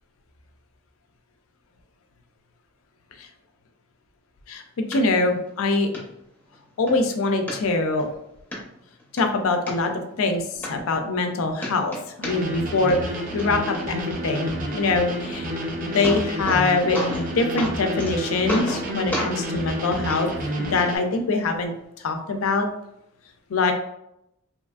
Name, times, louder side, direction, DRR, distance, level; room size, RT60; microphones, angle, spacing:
voice 1, 4.9-5.9 6.8-8.1 9.1-11.9 12.2-13.0 13.3-15.5 15.8-20.3 20.6-22.7 23.5-23.7, left 3 dB, 85° left, 5 dB, 0.4 m, -24 dB
sound 1, 4.9-5.0 5.5-5.6 5.9-6.0 6.5-7.0 7.5-8.1 8.5-8.6 9.0-9.7 10.3-10.4 10.6-11.3 11.6-12.6 12.9-13.4 15.5-15.6 15.8-16.7 16.9-17.3 17.6-18.1 18.5-18.9 19.1-19.3 20.1-20.2 21.1-21.2, left 1 dB, 10° left, 0.6 m, -31 dB
sound 2, 12.2-21.0, equal, 40° right, 0.4 m, -30 dB
2.8 x 2.4 x 2.3 m, 0.80 s
head